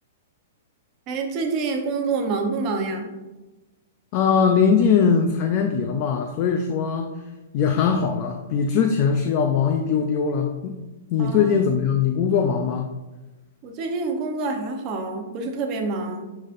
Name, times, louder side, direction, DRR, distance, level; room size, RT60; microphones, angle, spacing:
voice 1, 1.1-3.1 11.2-11.5 13.6-16.3, right 3 dB, 25° right, 3 dB, 0.9 m, -27 dB
voice 2, 4.1-7.1 7.5-10.8 11.1-12.9, left 6 dB, 35° left, 4 dB, 0.5 m, -21 dB
11.5 x 4.0 x 2.6 m, 1.1 s
hypercardioid pair, 170°, 0 cm